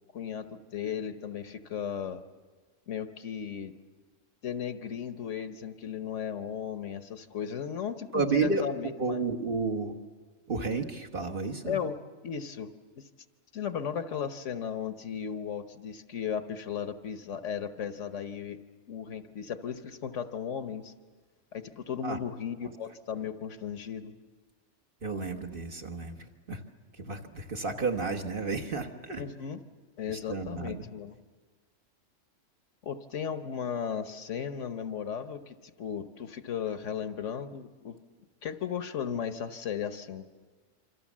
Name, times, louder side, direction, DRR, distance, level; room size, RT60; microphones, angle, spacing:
voice 1, 0.1-2.2 2.9-3.7 4.4-9.2 11.6-12.0 12.2-13.1 13.5-18.6 18.9-20.9 21.5-24.2 29.2-29.6 30.0-31.2 32.8-38.0 38.4-40.2, left 8 dB, 65° left, 10 dB, 1.3 m, -36 dB
voice 2, 8.1-10.0 10.5-11.8 22.0-22.2 25.0-26.6 26.9-29.2 30.1-30.9, right 4 dB, 45° right, 2 dB, 1.6 m, -32 dB
27.0 x 25.0 x 7.4 m, 1.4 s
omnidirectional pair, 1.4 m